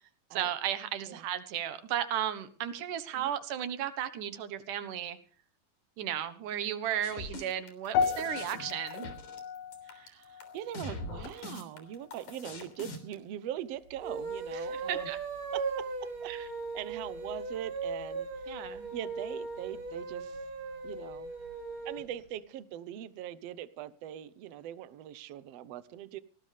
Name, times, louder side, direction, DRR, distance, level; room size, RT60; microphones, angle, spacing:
voice 1, 0.3-5.2 6.0-9.1 14.7-15.2 16.3-16.4 18.5-18.9, right 10 dB, 65° right, 12 dB, 2.7 m, -34 dB
sound 1, 7.0-13.2, left 2 dB, 55° left, 4.6 m, -42 dB
sound 2, 7.9-12.3 12.6-13.0 13.6-13.7, left 6 dB, 75° left, 2.7 m, -36 dB
voice 2, 9.8-15.1 15.5-16.3 16.7-20.4 20.8-21.3 21.8-26.2, right 11 dB, 80° right, 14 dB, 1.4 m, -42 dB
sound 3, 13.9-22.1, right 4 dB, 35° right, 3.1 m, -38 dB
19.0 x 18.5 x 3.4 m, 0.42 s
omnidirectional pair, 4.3 m